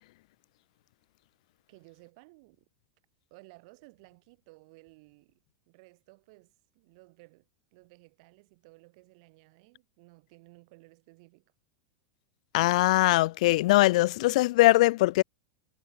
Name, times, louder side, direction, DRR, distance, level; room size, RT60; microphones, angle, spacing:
voice 1, 1.7-2.7 3.3-11.5, right 27 dB, 60° right, 5.8 m, -57 dB
voice 2, 12.5-15.2, left 19 dB, 65° left, 0.4 m, -21 dB
supercardioid pair, 135°, 4 cm